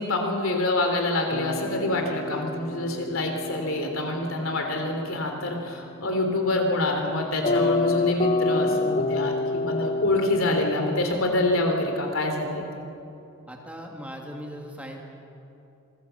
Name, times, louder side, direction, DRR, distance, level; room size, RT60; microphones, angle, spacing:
voice 1, 0.0-12.9, left 2 dB, 70° left, 3 dB, 3.5 m, -26 dB
sound 1, 1.3-11.0, left 3 dB, 35° left, 0.8 m, -29 dB
voice 2, 13.5-15.0, equal, 5° right, 0 dB, 2.4 m, -38 dB
27.0 x 20.5 x 7.1 m, 2.8 s
head